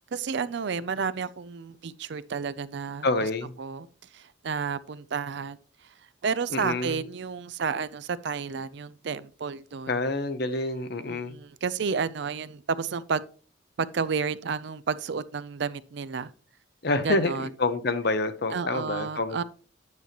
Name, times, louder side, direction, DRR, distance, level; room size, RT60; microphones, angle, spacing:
voice 1, 0.1-3.1 3.6-3.9 4.1-5.6 6.2-9.9 11.1-13.2 13.8-16.3 17.0-17.5 18.5-19.4, right 5 dB, 60° right, 0.4 m, -31 dB
voice 2, 3.0-3.5 6.5-7.0 9.9-11.4 16.8-19.4, left 2 dB, 55° left, 0.8 m, -27 dB
9.6 x 6.9 x 2.9 m
head